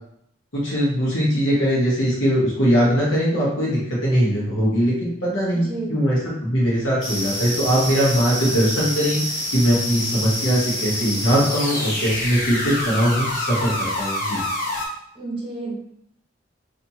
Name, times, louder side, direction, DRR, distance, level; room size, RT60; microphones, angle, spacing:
voice 1, 0.5-14.4, equal, 80° left, -6 dB, 1.4 m, -21 dB
voice 2, 5.5-6.0 15.1-15.7, right 2 dB, 25° right, -3 dB, 1.0 m, -30 dB
sound 1, 7.0-14.9, left 1 dB, 45° left, 1.1 m, -27 dB
3.2 x 2.9 x 4.2 m, 0.72 s
head